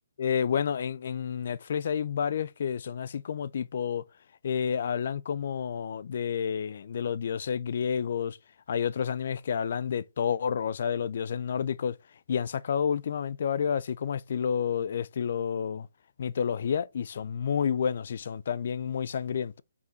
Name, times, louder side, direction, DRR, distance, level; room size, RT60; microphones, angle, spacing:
voice 1, 0.2-4.0 4.4-8.4 8.7-11.9 12.3-15.9 16.2-19.6, left 7 dB, 55° left, 0.4 m, -30 dB
5.6 x 4.8 x 4.0 m
hypercardioid pair, 155°, 0 cm